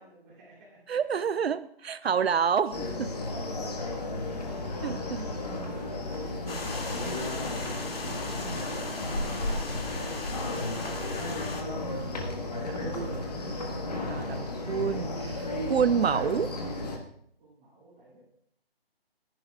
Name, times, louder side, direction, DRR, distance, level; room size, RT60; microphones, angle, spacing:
voice 1, 0.0-1.1 3.2-3.6 5.2-5.9 6.5-7.2 9.7-10.2 12.5-13.1 13.7-14.2 17.4-18.2, right 1 dB, 15° right, -7 dB, 3.2 m, -50 dB
voice 2, 0.9-3.1 4.8-5.3 12.8-13.1 14.1-16.5, right 7 dB, 80° right, 14 dB, 0.5 m, -28 dB
sound 1, 2.7-17.0, left 2 dB, 40° left, 1.5 m, -34 dB
sound 2, 6.5-11.6, left 2 dB, 70° left, 2.4 m, -36 dB
25.0 x 11.0 x 2.4 m, 0.67 s
hypercardioid pair, 175°, 31 cm